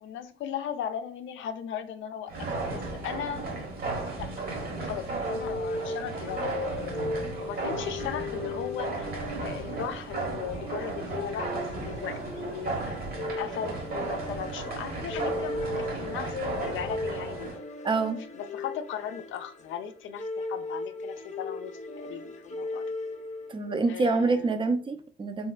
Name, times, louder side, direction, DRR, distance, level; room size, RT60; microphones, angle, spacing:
voice 1, 0.0-3.5 4.2-4.3 4.7-7.0 7.4-9.1 9.4-17.5 18.3-22.8 23.9-24.6, left 8 dB, 75° left, 0.4 m, -37 dB
sound 1, 2.3-17.6, right 3 dB, 50° right, 1.0 m, -35 dB
sound 2, 5.2-23.7, left 2 dB, 35° left, 0.7 m, -37 dB
voice 2, 17.8-18.2 23.5-25.5, right 3 dB, 25° right, 0.4 m, -26 dB
3.2 x 2.9 x 2.3 m
cardioid pair, 90°, 20 cm